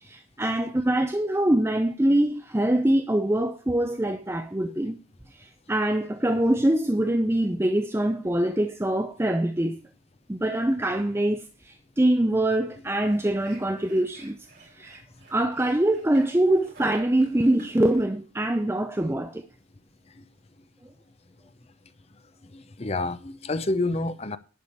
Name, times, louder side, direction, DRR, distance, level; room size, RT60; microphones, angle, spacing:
voice 1, 0.0-5.0 5.3-9.8 10.3-14.4 14.7-15.0 15.3-19.4, right 1 dB, 10° right, 0.6 m, -24 dB
sound 1, 12.7-18.1, right 3 dB, 50° right, 4.1 m, -52 dB
voice 2, 22.4-24.4, left 2 dB, 30° left, 0.6 m, -29 dB
11.0 x 5.0 x 8.3 m
head